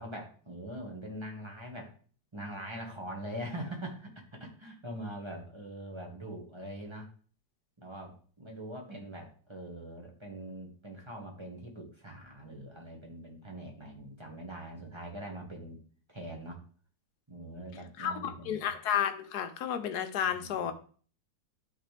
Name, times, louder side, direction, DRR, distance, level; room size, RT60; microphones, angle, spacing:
voice 1, 0.0-2.0 2.3-7.1 7.8-15.8 16.1-16.6 17.3-18.7 20.2-20.7, right 1 dB, 15° right, 1 dB, 1.3 m, -43 dB
voice 2, 18.0-20.7, left 9 dB, 70° left, 10 dB, 1.2 m, -32 dB
11.0 x 4.1 x 3.3 m, 0.43 s
omnidirectional pair, 1.9 m